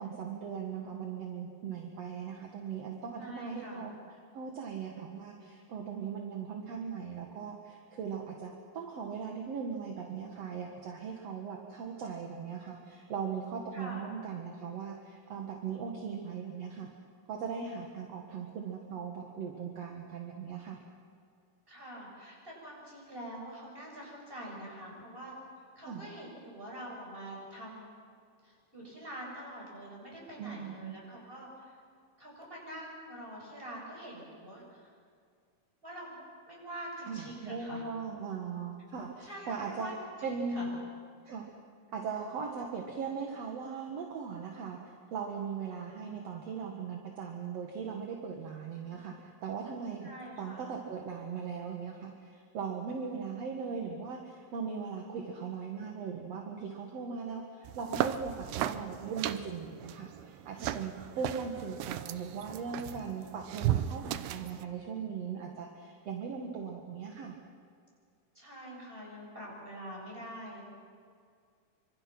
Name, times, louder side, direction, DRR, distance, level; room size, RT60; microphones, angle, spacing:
voice 1, 0.0-3.9 4.3-16.9 17.3-20.8 25.9-26.1 30.4-30.9 37.1-39.9 40.2-40.8 41.2-41.5 41.9-49.1 49.4-50.1 50.4-67.3, right 6 dB, 50° right, 1 dB, 2.1 m, -39 dB
voice 2, 3.2-3.9 13.7-14.1 21.7-25.3 25.8-27.9 28.4-31.8 32.2-34.9 35.8-36.2 36.5-37.8 39.2-39.9 40.2-40.7 50.0-50.8 60.5-61.2 68.3-70.6, right 1 dB, 10° right, -3 dB, 7.5 m, -45 dB
sound 1, 57.6-64.6, right 12 dB, 80° right, 2.7 m, -36 dB
26.5 x 25.5 x 6.1 m, 2.2 s
omnidirectional pair, 4.6 m